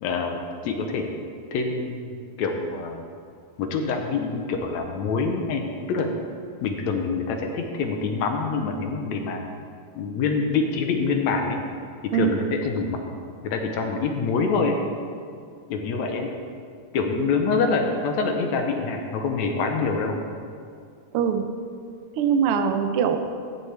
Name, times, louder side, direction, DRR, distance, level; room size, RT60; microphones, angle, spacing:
voice 1, 0.0-1.1 1.5-3.0 3.6-6.1 6.6-9.4 10.0-11.6 12.1-13.0 13.4-14.8 15.7-16.3 16.9-20.2, left 4 dB, 75° left, 3 dB, 1.9 m, -25 dB
voice 2, 21.1-21.4 22.2-23.2, right 8 dB, 80° right, 7 dB, 1.2 m, -22 dB
14.5 x 9.5 x 3.3 m, 2.2 s
omnidirectional pair, 3.5 m